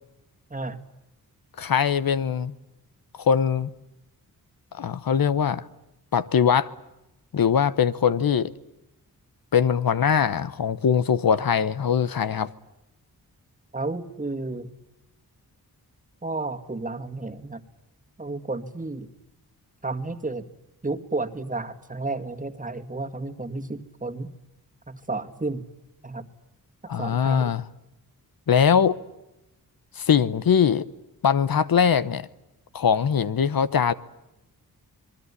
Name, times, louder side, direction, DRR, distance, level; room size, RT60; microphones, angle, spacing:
voice 1, 1.6-2.5 3.2-3.7 4.7-5.6 6.1-6.7 7.3-8.5 9.5-12.5 26.9-27.6 28.5-29.0 30.0-30.8 31.2-32.2 32.7-33.9, left 7 dB, 70° left, 1.0 m, -21 dB
voice 2, 13.7-14.7 16.2-17.6 18.2-19.1 19.8-20.4 20.8-24.3 24.9-25.7 26.0-26.3 26.8-27.6, right 3 dB, 20° right, 2.0 m, -32 dB
26.5 x 21.0 x 9.8 m
wide cardioid pair, 100°, 37 cm